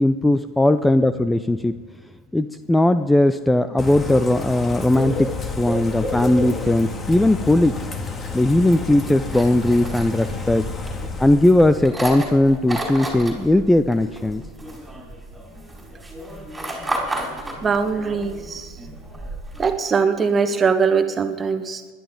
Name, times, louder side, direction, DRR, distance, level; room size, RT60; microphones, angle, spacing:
voice 1, 0.0-1.8 2.3-7.8 8.3-10.7 11.2-14.4, left 1 dB, 5° left, 12 dB, 0.5 m, -18 dB
Bird / Rain, 3.8-11.9, left 3 dB, 25° left, 1.9 m, -30 dB
sound 1, 9.2-19.7, right 1 dB, 10° right, 4.5 m, -33 dB
voice 2, 17.6-18.8 19.6-21.9, right 5 dB, 25° right, 8 dB, 1.4 m, -21 dB
21.0 x 11.5 x 3.8 m, 1.5 s
hypercardioid pair, 85°, 0 cm